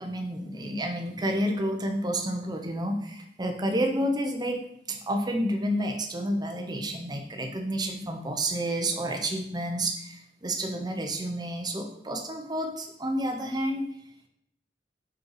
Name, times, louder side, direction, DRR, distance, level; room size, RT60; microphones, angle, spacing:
voice 1, 0.0-4.6 4.9-13.8, right 1 dB, 25° right, 3 dB, 0.8 m, -30 dB
5.4 x 5.3 x 4.7 m, 0.71 s
head